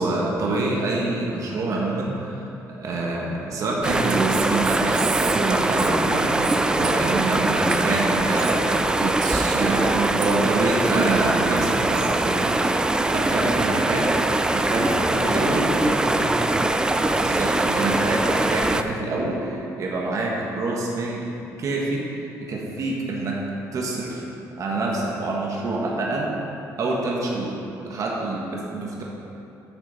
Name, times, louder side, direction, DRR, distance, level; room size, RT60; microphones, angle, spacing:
voice 1, 0.0-12.5 13.1-14.1 14.5-14.9 15.2-15.6 17.2-21.3 21.6-22.0 22.4-23.4 23.7-24.2 24.6-26.3 26.8-29.0, right 2 dB, 55° right, -3 dB, 1.4 m, -27 dB
sound 1, 3.8-18.8, right 2 dB, 10° right, 0.4 m, -22 dB
Female speech woman speaking, 3.8-10.7 10.9-12.2, right 6 dB, 90° right, 0.8 m, -29 dB
voice 2, 9.5-10.0 14.7-16.5, left 2 dB, 35° left, 1 dB, 1.2 m, -31 dB
10.0 x 6.4 x 4.1 m, 2.8 s
cardioid pair, 115°, 7 cm